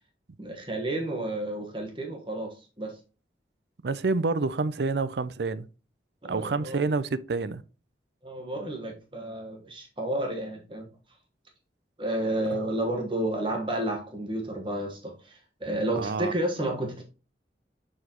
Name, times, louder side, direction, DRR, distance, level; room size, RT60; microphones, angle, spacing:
voice 1, 0.4-3.0 6.2-6.9 8.2-10.9 12.0-17.0, right 1 dB, 30° right, 1.3 m, -31 dB
voice 2, 3.8-5.7 6.2-7.6 12.5-12.6 16.0-16.3, right 3 dB, 70° right, 0.5 m, -28 dB
7.0 x 6.4 x 3.0 m
head